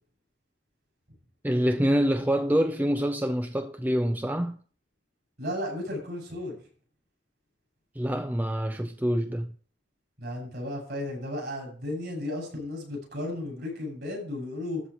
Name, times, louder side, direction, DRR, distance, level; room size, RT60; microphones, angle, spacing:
voice 1, 1.4-4.6 8.0-9.5, equal, 10° right, 0.5 m, -26 dB
voice 2, 5.4-6.6 10.2-14.8, left 1 dB, 55° right, 6.6 m, -34 dB
13.5 x 4.4 x 8.2 m
head